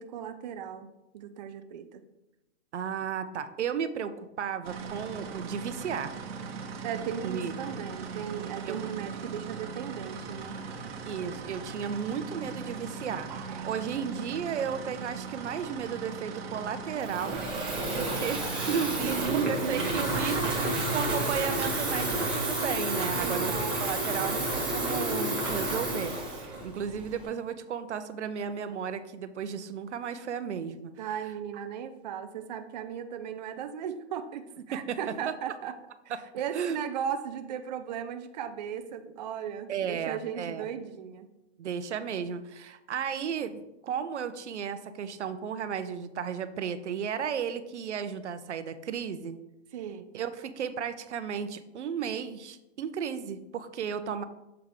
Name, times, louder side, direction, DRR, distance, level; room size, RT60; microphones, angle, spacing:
voice 1, 0.0-2.0 6.8-10.6 13.3-13.8 19.0-20.7 21.0-21.3 21.9-22.1 23.1-23.8 31.0-35.7 36.3-41.3 49.7-50.1, right 8 dB, 40° right, 8 dB, 0.4 m, -36 dB
voice 2, 2.7-6.1 7.2-7.5 8.6-8.8 11.0-13.3 13.6-19.2 19.5-20.5 20.9-30.9 34.7-35.3 36.1-36.2 36.5-36.8 39.7-40.6 41.6-49.4 50.1-54.2, right 7 dB, 80° right, 11 dB, 0.7 m, -34 dB
sound 1, 4.6-22.3, right 5 dB, 60° right, 1.0 m, -40 dB
Water tap faucet / Fill (with liquid), 17.0-27.3, right 1 dB, 5° right, 1.4 m, -30 dB
7.0 x 3.6 x 4.8 m, 0.94 s
hypercardioid pair, 150°, 34 cm